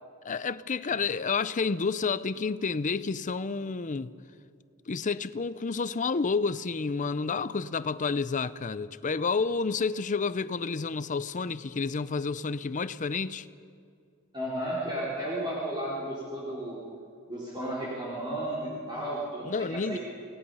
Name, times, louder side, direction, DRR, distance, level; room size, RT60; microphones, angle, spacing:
voice 1, 0.2-4.1 4.9-13.5 19.4-20.0, left 4 dB, 35° left, 0.6 m, -30 dB
voice 2, 14.3-16.8 17.3-20.0, right 1 dB, 20° right, 4.1 m, -33 dB
29.0 x 18.5 x 5.6 m
head